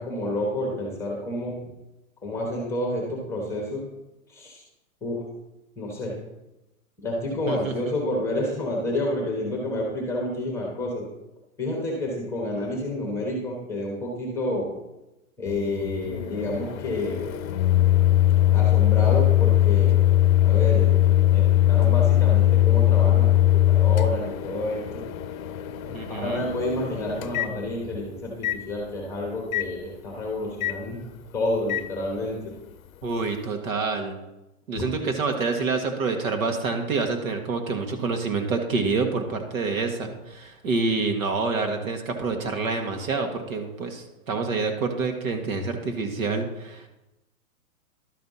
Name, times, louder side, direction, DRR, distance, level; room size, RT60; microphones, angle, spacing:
voice 1, 0.0-1.6 2.2-3.9 4.3-4.6 5.0-5.3 5.8-6.2 7.0-11.1 11.6-14.7 15.4-17.3 18.5-20.0 20.4-25.0 26.1-31.0 31.3-32.5, left 1 dB, 5° left, -1 dB, 1.1 m, -29 dB
voice 2, 7.5-7.9 25.9-26.5 33.0-34.2 34.7-46.9, right 4 dB, 65° right, 4 dB, 1.7 m, -27 dB
Microwave oven, 15.5-28.0 28.4-28.6 29.5-29.7 30.6-30.8 31.7-31.9, left 13 dB, 70° left, 0.6 m, -21 dB
11.5 x 4.4 x 5.5 m, 0.96 s
hypercardioid pair, 160°, 43 cm